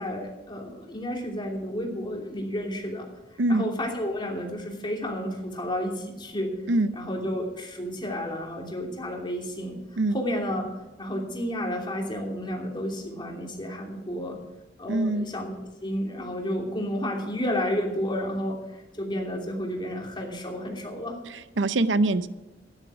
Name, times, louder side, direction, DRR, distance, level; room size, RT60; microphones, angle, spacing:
voice 1, 0.0-3.1 3.5-6.5 6.9-9.8 10.1-10.7 11.0-14.4 14.8-18.6 19.0-21.1, equal, 25° left, 0 dB, 2.9 m, -31 dB
voice 2, 3.4-3.7 6.7-6.9 10.0-10.2 14.9-15.3 21.6-22.3, right 2 dB, 85° right, 14 dB, 0.7 m, -23 dB
13.0 x 11.0 x 4.9 m, 1.1 s
head